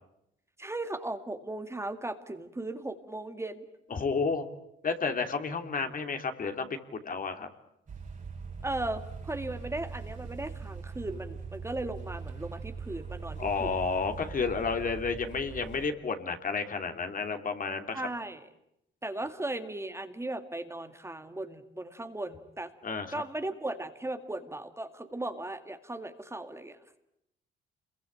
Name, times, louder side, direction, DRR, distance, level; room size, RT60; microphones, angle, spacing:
voice 1, 0.6-3.7 8.6-13.7 17.9-18.5 19.0-22.7 23.1-26.8, right 2 dB, 15° right, 7 dB, 2.0 m, -37 dB
voice 2, 3.9-4.4 4.8-7.5 13.4-18.0 22.8-23.2, left 4 dB, 45° left, 6 dB, 3.0 m, -31 dB
sound 1, 7.9-15.9, right 5 dB, 40° right, 3.9 m, -41 dB
28.0 x 22.5 x 8.7 m, 0.81 s
cardioid pair, 90°, 20 cm